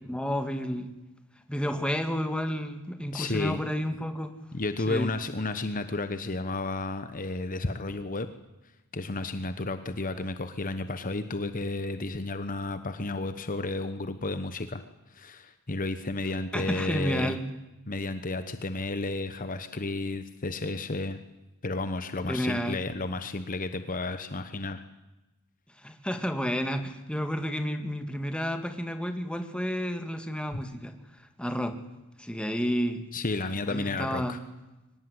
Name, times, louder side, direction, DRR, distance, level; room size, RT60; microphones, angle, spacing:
voice 1, 0.0-0.9 1.5-4.3 4.9-5.1 16.5-17.4 22.3-22.8 25.8-30.9 31.4-31.8 32.2-33.1 33.7-34.4, equal, 5° left, 7 dB, 2.0 m, -31 dB
voice 2, 3.1-3.6 4.5-8.3 8.9-14.8 15.1-17.4 17.9-21.2 21.6-24.8 33.1-34.4, left 2 dB, 40° left, 11 dB, 1.1 m, -32 dB
23.5 x 19.0 x 9.7 m, 1.0 s
head